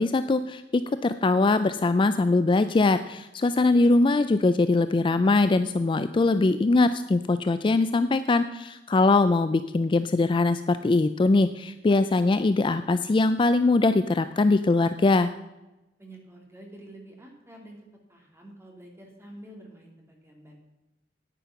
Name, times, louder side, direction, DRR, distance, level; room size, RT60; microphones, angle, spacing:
voice 1, 0.0-15.3, left 3 dB, 25° left, 11 dB, 0.3 m, -22 dB
voice 2, 16.0-17.8 18.1-20.5, right 1 dB, 15° right, 0 dB, 2.5 m, -48 dB
10.0 x 9.3 x 5.7 m, 0.99 s
head